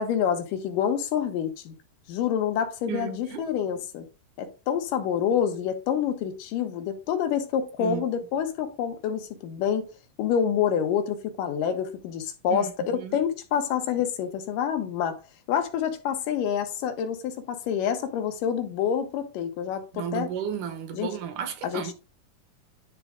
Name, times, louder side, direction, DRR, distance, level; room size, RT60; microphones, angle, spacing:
voice 1, 0.0-1.7 2.1-4.1 4.4-9.8 10.2-15.1 15.5-20.3 20.9-21.1 21.6-21.9, left 8 dB, 85° left, 2.6 m, -27 dB
voice 2, 2.9-3.4 7.8-8.0 12.5-13.2 19.9-21.9, right 8 dB, 75° right, 2.4 m, -33 dB
10.5 x 3.5 x 3.6 m
omnidirectional pair, 3.8 m